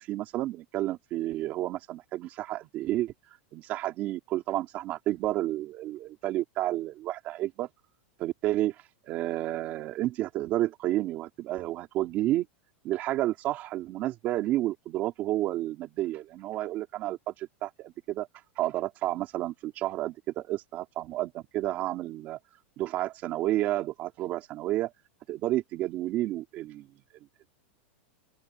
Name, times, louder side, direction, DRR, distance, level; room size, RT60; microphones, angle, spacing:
voice 1, 0.0-3.1 3.5-7.7 8.2-8.8 9.0-12.5 12.8-18.3 18.6-22.4 22.8-24.9 25.3-26.9, right 15 dB, 25° right, 3.6 m, -31 dB
open air
supercardioid pair, 180°, 6 cm